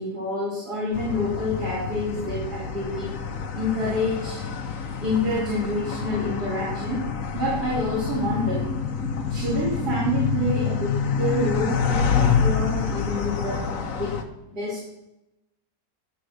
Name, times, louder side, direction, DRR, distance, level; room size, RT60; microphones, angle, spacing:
voice 1, 0.0-3.1 3.5-4.4 5.0-7.0 7.3-8.6 9.3-13.7 13.9-14.2 14.5-14.9, left 1 dB, 65° right, -7 dB, 3.2 m, -27 dB
sound 1, 0.9-14.2, left 6 dB, 55° left, 1.1 m, -27 dB
11.0 x 4.4 x 6.4 m, 0.91 s
omnidirectional pair, 1.8 m